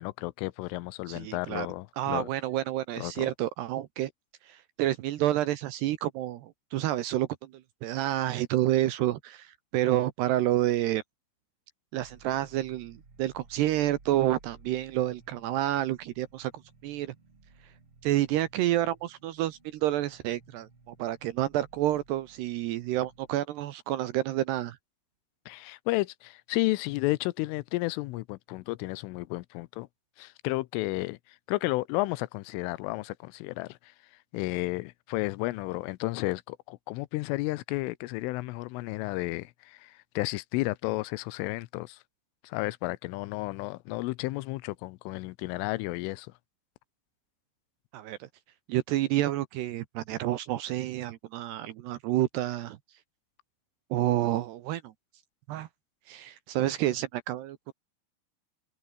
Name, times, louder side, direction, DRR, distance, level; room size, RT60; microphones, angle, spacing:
voice 1, 0.0-2.3 3.0-3.3 25.5-29.9 30.2-33.9 34.3-42.0 42.4-46.3, left 21 dB, 85° left, 3.2 m, -32 dB
voice 2, 1.1-1.7 2.0-4.1 4.4-7.5 7.8-11.0 11.9-16.5 16.8-17.1 18.0-24.8 47.9-48.3 48.7-52.8 53.9-54.9 55.5-55.7 56.1-57.7, right 14 dB, 75° right, 2.6 m, -29 dB
sound 1, 12.0-23.3, right 3 dB, 25° right, 5.2 m, -58 dB
omnidirectional pair, 5.7 m